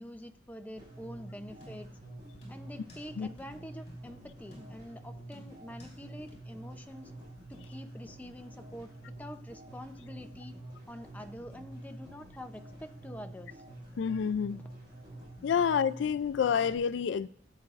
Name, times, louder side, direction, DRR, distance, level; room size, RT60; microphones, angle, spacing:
voice 1, 0.0-1.9 2.5-7.1 7.5-8.9 9.2-10.5 10.9-13.6, equal, 10° left, 0.6 m, -46 dB
sound 1, 0.8-16.8, right 1 dB, 25° right, 4.9 m, -48 dB
sound 2, 1.6-2.0 2.4-3.1 3.4-3.5 3.9-4.1 4.5-5.0 5.3-6.0 6.3-6.4, left 1 dB, 35° left, 4.8 m, -53 dB
voice 2, 14.0-14.6 15.4-17.3, left 7 dB, 75° left, 0.3 m, -28 dB
17.0 x 8.6 x 2.5 m
head